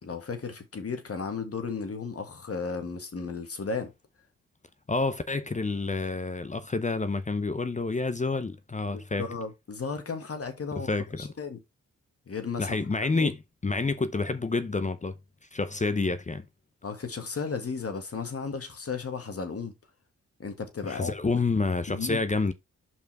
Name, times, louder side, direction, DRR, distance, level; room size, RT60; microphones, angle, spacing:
voice 1, 0.0-3.9 8.9-10.9 11.2-11.6 12.3-13.3 16.8-19.7 20.4-21.1 21.9-22.2, left 5 dB, 50° left, 1.9 m, -34 dB
voice 2, 4.9-9.2 10.9-11.3 12.6-13.4 13.6-15.1 15.5-16.5 20.8-22.5, left 3 dB, 25° left, 0.7 m, -28 dB
5.4 x 4.7 x 4.7 m
cardioid pair, 55°, 31 cm